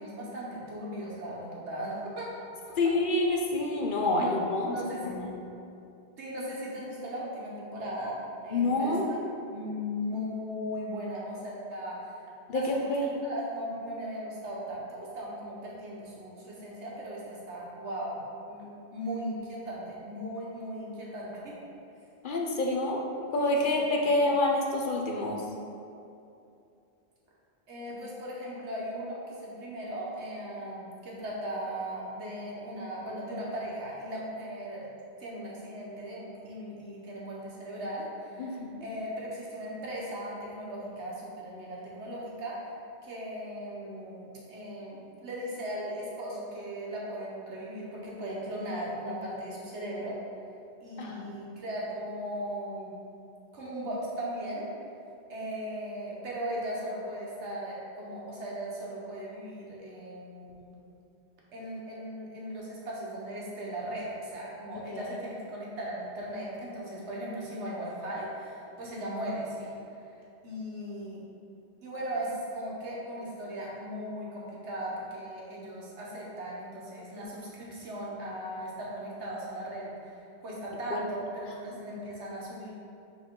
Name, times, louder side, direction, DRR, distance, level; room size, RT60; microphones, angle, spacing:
voice 1, 0.0-2.2 2.7-2.8 4.2-4.3 4.6-5.2 6.2-9.2 9.5-12.2 12.5-18.2 18.5-21.7 23.6-24.1 27.7-34.8 35.2-42.6 43.0-50.2 50.8-53.0 53.5-54.7 55.3-60.7 61.5-71.2 71.8-82.7, equal, 90° right, -5 dB, 1.5 m, -38 dB
voice 2, 2.8-4.8 5.0-5.4 8.5-9.0 12.5-13.1 22.2-23.0 23.3-25.4 38.4-38.8 51.0-51.3 64.9-65.1 80.9-81.0, left 2 dB, 55° left, 0 dB, 0.7 m, -27 dB
5.5 x 4.8 x 3.7 m, 2.7 s
omnidirectional pair, 1.1 m